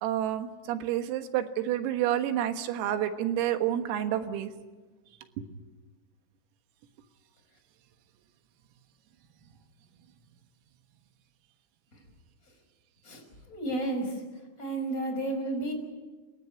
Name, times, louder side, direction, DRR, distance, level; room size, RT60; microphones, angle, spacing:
voice 1, 0.0-4.5 5.4-5.5, right 11 dB, 85° right, 8 dB, 4.1 m, -29 dB
voice 2, 13.0-14.2 14.6-15.7, right 2 dB, 15° left, 3 dB, 5.3 m, -32 dB
29.0 x 16.0 x 9.7 m, 1.3 s
omnidirectional pair, 6.0 m